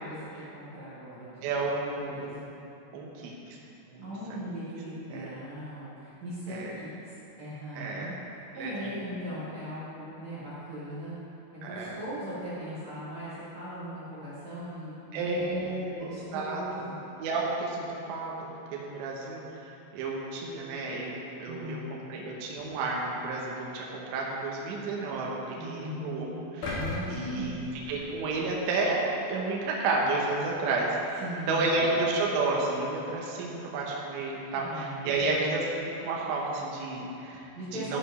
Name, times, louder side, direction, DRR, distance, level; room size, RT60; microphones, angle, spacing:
voice 1, 0.0-1.5 2.0-2.3 4.0-7.1 7.4-8.1 8.4-11.1 11.5-17.0 21.5-21.9 22.1-22.3 25.5-27.7 31.2-31.8 34.5-35.5 37.5-38.0, equal, 45° right, -11 dB, 2.6 m, -39 dB
voice 2, 1.4-2.4 2.9-3.6 3.9-4.4 5.1-5.3 6.5-6.7 7.7-8.1 8.6-9.1 11.6-12.0 15.1-16.9 17.2-19.4 19.9-26.3 26.5-26.7 27.1-31.2 31.5-37.5 37.7-38.0, right 3 dB, 70° right, -3 dB, 3.0 m, -31 dB
sound 1, 26.6-28.8 29.3-29.4, left 1 dB, 65° left, 2.1 m, -37 dB
13.5 x 5.2 x 5.0 m, 2.9 s
omnidirectional pair, 5.8 m